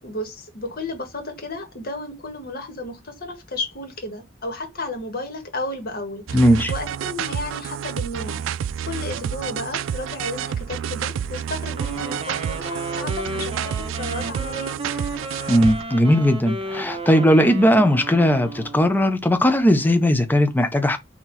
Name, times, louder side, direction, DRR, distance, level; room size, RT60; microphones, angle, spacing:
voice 1, 0.0-6.4 6.7-8.4 8.8-14.7, left 2 dB, 50° left, 1.7 m, -33 dB
voice 2, 6.3-6.7 15.5-21.0, equal, 10° left, 0.6 m, -18 dB
sound 1, 6.3-15.8, right 8 dB, 90° right, 0.3 m, -29 dB
Wind instrument woodwind instrument, 11.7-18.9, right 2 dB, 30° right, 1.0 m, -33 dB
4.4 x 2.9 x 4.0 m
head